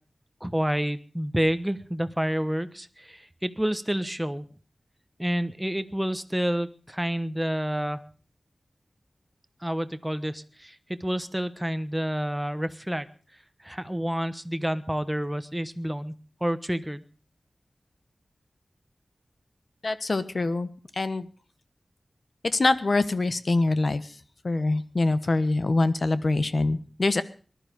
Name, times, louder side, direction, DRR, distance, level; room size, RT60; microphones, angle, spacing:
voice 1, 0.4-4.5 5.2-8.0 9.6-13.1 13.6-17.0, equal, 10° right, 12 dB, 1.1 m, -29 dB
voice 2, 19.8-21.3 22.4-24.2 24.4-27.2, left 2 dB, 55° left, 13 dB, 1.3 m, -24 dB
20.0 x 12.5 x 5.2 m, 0.39 s
wide cardioid pair, 95°, 0 cm